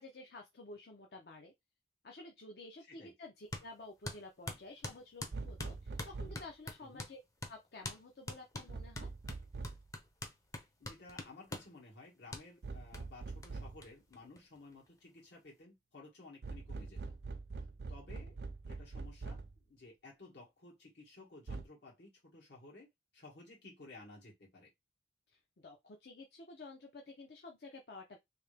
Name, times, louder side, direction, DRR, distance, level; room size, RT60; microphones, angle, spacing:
voice 1, 0.0-1.5 2.0-7.2 7.5-9.1 25.3-28.2, left 2 dB, 60° left, 0.6 m, -52 dB
sound 1, 3.5-3.7 4.1-7.2 7.4-7.6 7.8-8.0 8.3-11.7 12.3-12.5 12.9-13.0 13.4-13.5 13.8-13.9 14.1-14.9, left 2 dB, 20° left, 0.5 m, -44 dB
sound 2, 5.3-6.5 8.7-9.9 12.6-13.9 16.4-19.6 21.5-21.6, right 3 dB, 65° right, 0.5 m, -44 dB
voice 2, 10.8-17.2 17.9-18.4 18.7-22.9 23.1-24.7, left 2 dB, 75° left, 1.9 m, -55 dB
3.3 x 2.8 x 3.3 m
head